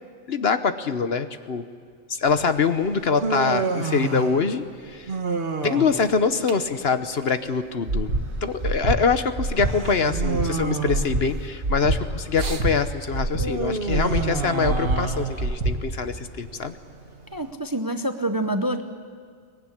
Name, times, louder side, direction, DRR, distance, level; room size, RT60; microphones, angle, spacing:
voice 1, 0.3-1.6 2.1-5.1 5.6-8.1 8.4-16.7, left 5 dB, 50° left, 10 dB, 1.1 m, -24 dB
Human voice, 2.3-17.5, right 4 dB, 50° right, 1.6 m, -31 dB
Breathing, 7.8-8.2 8.6-9.0 9.3-9.7 10.1-10.5 10.9-11.2 11.6-12.0 12.4-12.7 13.1-13.5 13.9-14.2 14.6-15.0 15.4-15.7, right 2 dB, 90° right, 2.7 m, -25 dB
voice 2, 17.3-18.8, right 1 dB, 20° right, 8 dB, 0.7 m, -26 dB
23.0 x 19.5 x 9.9 m, 2.1 s
omnidirectional pair, 1.4 m